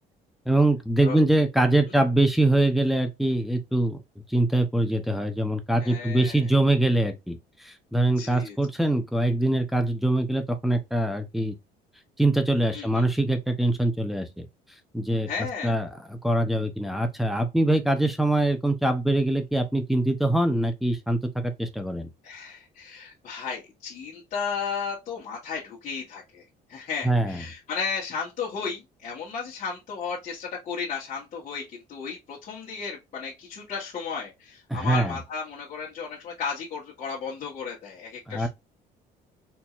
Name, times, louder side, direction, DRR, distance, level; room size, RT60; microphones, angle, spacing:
voice 1, 0.5-4.0 4.3-11.6 12.2-14.5 14.9-15.3 15.6-22.1 27.0-27.4 34.7-35.2 38.3-38.5, right 1 dB, ahead, 0.8 m, -23 dB
voice 2, 5.8-6.4 8.2-8.6 12.7-13.0 15.3-15.8 22.2-26.4 26.7-31.6 31.9-38.5, left 5 dB, 45° left, 1.5 m, -34 dB
4.4 x 2.8 x 2.4 m
cardioid pair, 110°, 17 cm